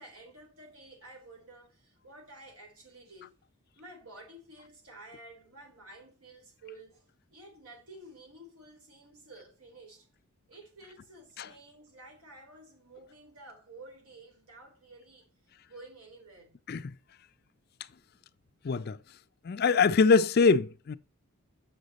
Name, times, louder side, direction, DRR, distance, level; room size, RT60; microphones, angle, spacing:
voice 1, 0.0-3.4 3.8-7.1 7.3-10.1 10.5-15.3 15.7-16.6, right 2 dB, 80° right, 3.5 m, -51 dB
voice 2, 18.6-19.0 19.4-21.0, left 4 dB, 45° left, 0.4 m, -23 dB
7.5 x 6.4 x 4.0 m
head